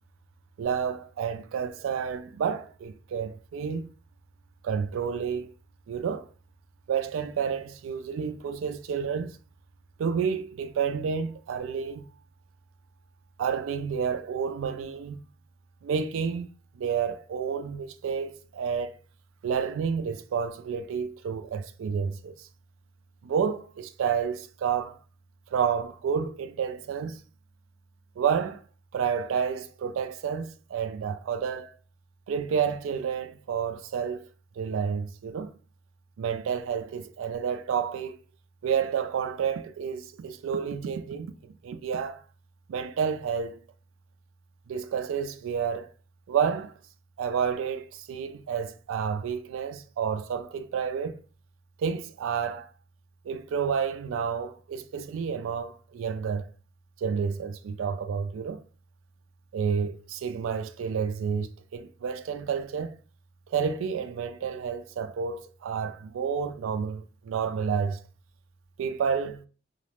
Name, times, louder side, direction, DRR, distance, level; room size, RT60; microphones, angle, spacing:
voice 1, 0.6-3.9 4.6-5.5 5.9-6.3 6.9-9.4 10.0-12.1 13.4-15.2 15.8-16.5 16.8-19.0 19.4-22.5 23.2-25.0 25.5-27.2 28.2-28.6 28.9-31.7 32.3-34.2 34.6-35.5 36.2-38.2 38.6-42.2 42.7-43.6 44.7-45.9 46.3-46.7 47.2-51.2 51.8-52.7 53.2-56.5 57.0-58.6 59.5-63.0 63.5-68.0 68.8-69.4, right 7 dB, 80° right, 0.3 m, -30 dB
2.3 x 2.0 x 3.0 m
head